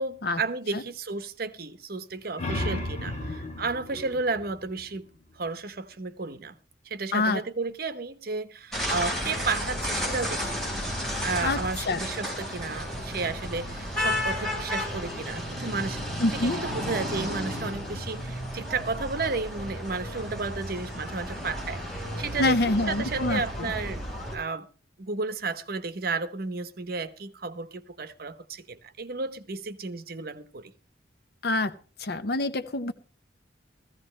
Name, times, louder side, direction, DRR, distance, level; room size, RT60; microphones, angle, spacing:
voice 1, 0.0-5.1 5.4-6.5 6.8-10.6 11.2-16.0 16.3-24.0 24.3-24.7 25.0-30.7, right 4 dB, 55° right, 0.9 m, -33 dB
sound 1, 2.1-5.5, left 1 dB, 40° left, 2.3 m, -35 dB
voice 2, 7.1-7.4 11.4-12.0 16.2-16.6 22.4-23.7 31.4-32.9, left 2 dB, 60° left, 0.8 m, -26 dB
sound 2, 8.7-24.4, equal, ahead, 4.7 m, -33 dB
15.5 x 15.0 x 3.2 m
head